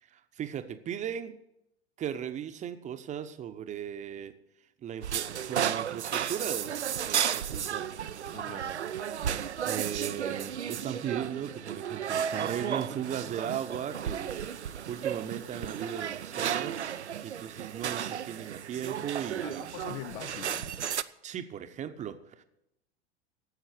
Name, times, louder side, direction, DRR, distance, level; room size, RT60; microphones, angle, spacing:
voice 1, 0.0-1.4 2.0-4.3 4.8-7.9 8.3-9.3 9.6-16.8 17.2-19.7 21.2-22.4, right 9 dB, 20° right, 0.8 m, -37 dB
sound 1, 5.0-21.0, right 9 dB, 80° right, 0.5 m, -33 dB
voice 2, 8.3-8.7 19.4-20.8, left 16 dB, 30° left, 0.3 m, -43 dB
11.5 x 8.2 x 8.3 m
figure-of-eight pair, 85°, 34 cm